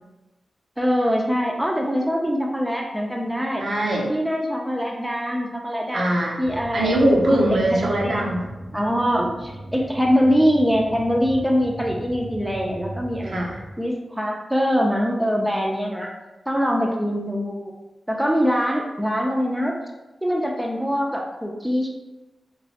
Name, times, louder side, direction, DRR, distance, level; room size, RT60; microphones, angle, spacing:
voice 1, 0.8-3.6 4.1-6.0 6.4-7.0 7.5-8.3 8.7-13.5 13.8-16.1 16.5-17.7 18.1-19.7 20.2-21.9, equal, 5° right, -1 dB, 0.4 m, -23 dB
voice 2, 3.6-4.1 5.9-6.4 6.7-8.5 13.2-13.6, right 1 dB, 75° right, -2 dB, 0.6 m, -21 dB
sound 1, 6.4-13.7, equal, 35° left, 0.7 m, -37 dB
3.0 x 2.3 x 2.8 m, 1.1 s
cardioid pair, 70°, 0 cm